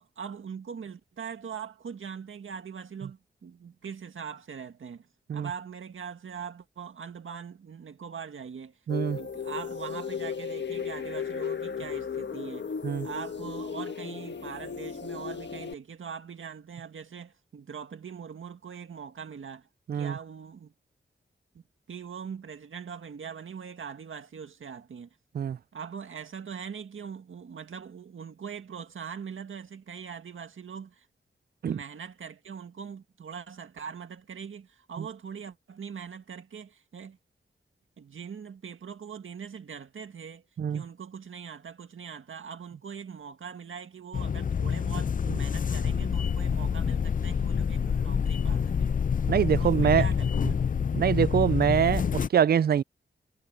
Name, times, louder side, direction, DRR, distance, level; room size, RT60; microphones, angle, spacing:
voice 1, 0.0-5.1 5.3-8.8 9.1-12.7 13.0-19.7 19.9-20.7 21.5-25.1 25.7-31.1 31.7-37.2 38.0-40.4 40.7-48.9 49.6-50.3 51.3-51.5, right 7 dB, 80° right, 1.8 m, -42 dB
sound 1, 8.9-15.7, left 6 dB, 60° left, 1.5 m, -35 dB
voice 2, 8.9-9.2 12.8-13.1 19.9-20.2 25.3-25.6 31.6-31.8 35.0-35.1 40.6-40.8 45.3-45.4 49.3-50.1 50.4-50.5 50.9-52.8, right 8 dB, 50° right, 0.4 m, -25 dB
sound 2, 44.1-52.3, left 7 dB, 45° left, 0.4 m, -27 dB
cardioid pair, 50°, 20 cm